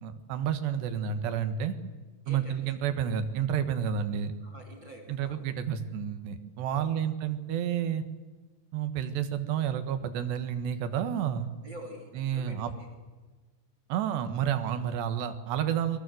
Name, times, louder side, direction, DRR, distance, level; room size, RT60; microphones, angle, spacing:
voice 1, 0.0-1.7 2.3-4.3 5.1-8.0 8.7-11.5 12.2-12.7 13.9-16.0, right 9 dB, 85° right, 9 dB, 3.9 m, -30 dB
voice 2, 2.2-2.7 4.4-5.6 6.7-7.0 11.6-12.9, right 1 dB, 30° right, 4 dB, 3.3 m, -47 dB
30.0 x 23.0 x 7.9 m, 1.3 s
omnidirectional pair, 4.8 m